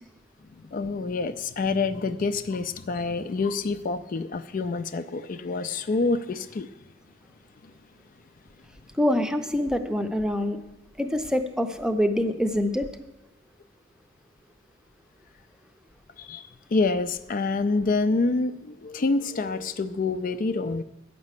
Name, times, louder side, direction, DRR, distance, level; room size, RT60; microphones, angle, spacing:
voice 1, 0.6-6.7 16.2-20.8, left 3 dB, 45° left, 11 dB, 0.4 m, -27 dB
voice 2, 9.0-10.6 11.0-12.9, left 1 dB, 5° right, 8 dB, 0.6 m, -25 dB
9.5 x 6.0 x 8.2 m, 0.96 s
head